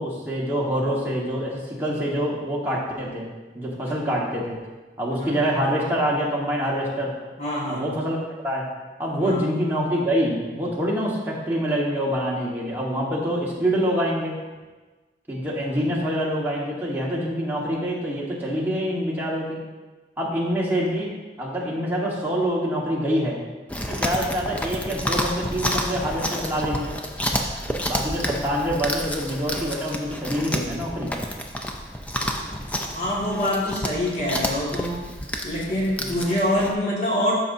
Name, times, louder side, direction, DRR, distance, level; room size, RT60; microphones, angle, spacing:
voice 1, 0.0-4.6 5.0-7.1 7.7-8.2 8.4-8.7 9.0-14.4 15.3-19.6 20.2-23.4 23.9-27.0 27.8-31.1 36.0-36.1, equal, 10° right, -5 dB, 1.4 m, -26 dB
voice 2, 7.4-7.9 9.2-9.4 32.9-35.1 35.4-37.3, left 1 dB, 40° left, -6 dB, 1.9 m, -25 dB
Chewing mastication, 23.7-36.7, equal, 10° left, 0.5 m, -30 dB
13.0 x 5.2 x 2.7 m, 1.3 s
head